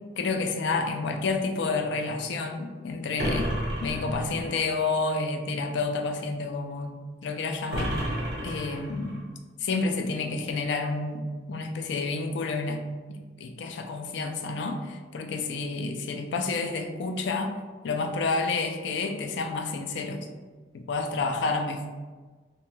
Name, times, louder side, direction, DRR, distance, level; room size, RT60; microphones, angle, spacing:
voice 1, 0.2-3.5 3.8-7.0 7.2-8.0 8.4-9.2 9.6-12.8 13.1-17.5 17.8-20.3 20.7-21.9, left 3 dB, 70° left, 5 dB, 0.3 m, -29 dB
sound 1, 3.2-4.6 7.7-9.2, equal, 60° right, 0.9 m, -31 dB
2.7 x 2.2 x 3.1 m, 1.3 s
head